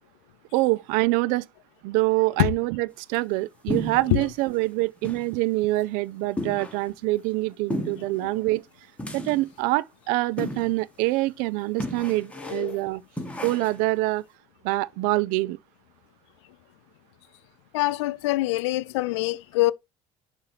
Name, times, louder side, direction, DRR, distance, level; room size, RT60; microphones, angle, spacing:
voice 1, 0.5-1.5 1.8-8.6 9.1-13.0 13.4-14.2 14.6-15.6, right 20 dB, 75° right, 0.4 m, -25 dB
sound 1, 3.7-4.3 4.6-4.7 5.0-5.3 5.7-5.8 6.4-6.9 7.7-8.2 9.0-9.5 10.4-10.8 11.1-11.2 11.8-12.7 13.2-13.8, left 1 dB, 10° left, 1.4 m, -33 dB
voice 2, 12.4-12.8 17.7-19.7, left 18 dB, 85° left, 0.4 m, -24 dB
6.5 x 2.9 x 5.7 m
hypercardioid pair, 75°, 14 cm